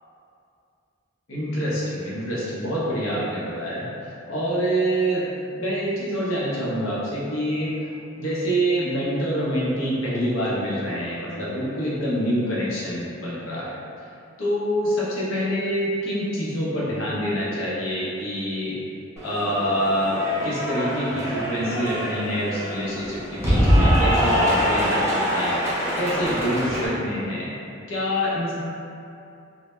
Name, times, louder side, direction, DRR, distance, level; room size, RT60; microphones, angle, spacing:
voice 1, 1.3-5.2 5.5-13.7 14.4-18.8 19.2-25.6 25.9-27.5 27.9-28.5, equal, 80° left, -7 dB, 0.7 m, -26 dB
Cheering / Applause, 19.2-26.9, equal, 15° right, 0.4 m, -23 dB
2.1 x 2.0 x 2.9 m, 2.6 s
head